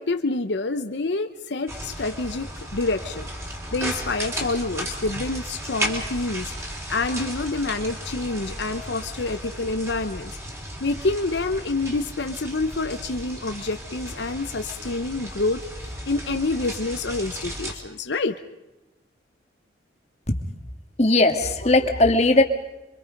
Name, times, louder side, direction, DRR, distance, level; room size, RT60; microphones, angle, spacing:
voice 1, 0.0-3.3 3.7-10.3 10.8-18.4, left 3 dB, 75° left, 8 dB, 0.9 m, -27 dB
sound 1, 1.7-17.7, equal, 15° right, 3.3 m, -34 dB
voice 2, 21.0-22.4, left 2 dB, 35° left, 6 dB, 1.8 m, -18 dB
27.5 x 24.5 x 5.3 m, 1.0 s
head